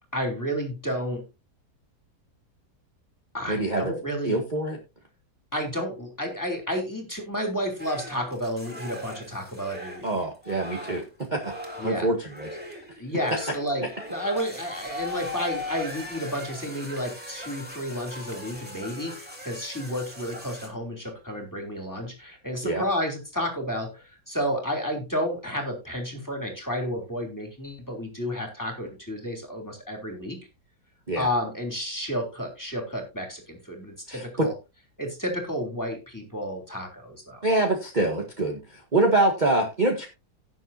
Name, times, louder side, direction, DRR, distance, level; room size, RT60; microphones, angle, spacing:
voice 1, 0.1-1.2 3.3-4.4 5.5-10.1 11.8-12.1 13.0-30.4 31.2-34.5 35.0-37.5, equal, 10° left, 2 dB, 3.3 m, -31 dB
voice 2, 3.5-3.9 4.2-4.8 10.0-11.0 11.3-11.5 11.8-12.5 22.6-22.8 31.1-31.3 34.1-34.5 37.4-40.1, right 2 dB, 30° right, 1 dB, 1.7 m, -25 dB
sound 1, 7.8-20.7, left 1 dB, 5° right, 3.1 m, -39 dB
17.0 x 7.2 x 2.8 m, 0.27 s
omnidirectional pair, 1.8 m